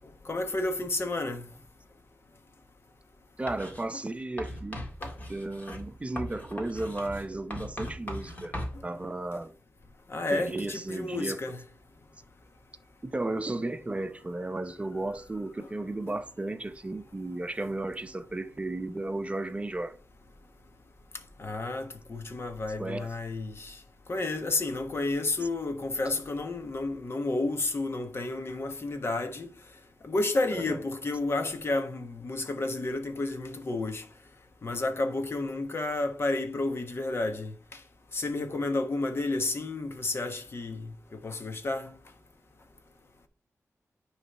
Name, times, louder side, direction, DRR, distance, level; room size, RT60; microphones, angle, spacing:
voice 1, 0.2-1.5 5.0-5.1 10.1-11.6 16.1-16.2 21.4-23.8 24.1-29.5 30.0-34.0 34.6-37.8 38.1-41.9, left 2 dB, 50° left, 1.3 m, -31 dB
voice 2, 3.4-4.9 5.3-8.6 8.8-9.5 10.3-11.4 13.0-20.0 22.8-23.1 30.5-30.8, right 2 dB, 25° right, 0.7 m, -34 dB
Writing, 3.5-3.9 4.4-8.8, left 1 dB, 30° left, 1.7 m, -39 dB
9.7 x 3.3 x 5.4 m
wide cardioid pair, 125°, 6 cm